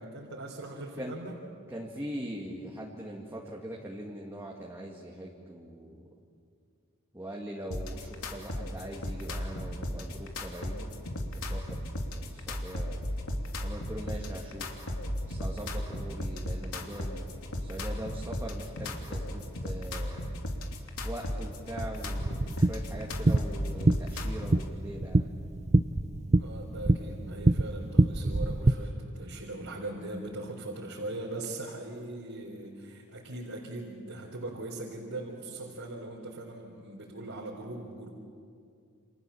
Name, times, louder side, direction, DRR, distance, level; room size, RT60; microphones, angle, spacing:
voice 1, 0.0-1.4 26.4-38.1, right 2 dB, 70° right, -3 dB, 4.0 m, -40 dB
voice 2, 1.7-6.1 7.1-10.9 11.3-13.0 13.6-14.8 15.2-17.3 17.6-20.4 21.0-25.3, right 1 dB, 10° right, -2 dB, 2.2 m, -41 dB
sound 1, 7.7-24.7, left 1 dB, 80° left, 2.8 m, -35 dB
sound 2, 22.2-28.7, right 2 dB, 30° right, 0.6 m, -26 dB
29.0 x 28.0 x 7.2 m, 2.3 s
head